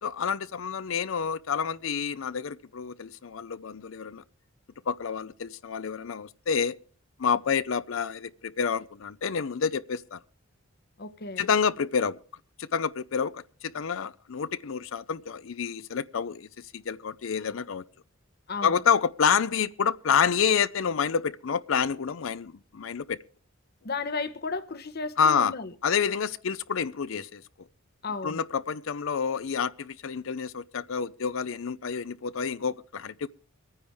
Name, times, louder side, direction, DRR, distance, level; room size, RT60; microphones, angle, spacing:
voice 1, 0.0-4.2 4.9-6.8 7.2-10.2 11.4-12.2 12.6-17.8 18.6-23.2 25.2-25.5 25.8-27.4 28.2-33.3, left 6 dB, 65° left, 0.5 m, -28 dB
voice 2, 11.0-11.5 18.5-18.8 23.8-25.7 28.0-28.4, left 4 dB, 50° left, 1.0 m, -34 dB
24.0 x 9.7 x 3.5 m
head